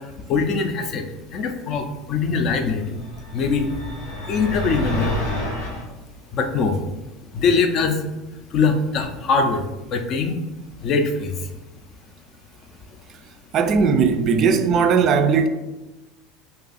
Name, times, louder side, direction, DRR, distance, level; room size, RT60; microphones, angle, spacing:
voice 1, 0.3-1.0 1.3-3.0 3.3-3.7 4.3-5.1 6.3-6.8 7.3-8.0 8.5-9.6 9.9-10.3 10.8-11.3, left 4 dB, 50° left, 0.5 m, -22 dB
sound 1, 2.9-5.9, left 1 dB, 85° left, 0.9 m, -28 dB
voice 2, 13.5-15.5, right 5 dB, 50° right, 0.3 m, -18 dB
2.6 x 2.3 x 4.0 m
hypercardioid pair, 85°, 0 cm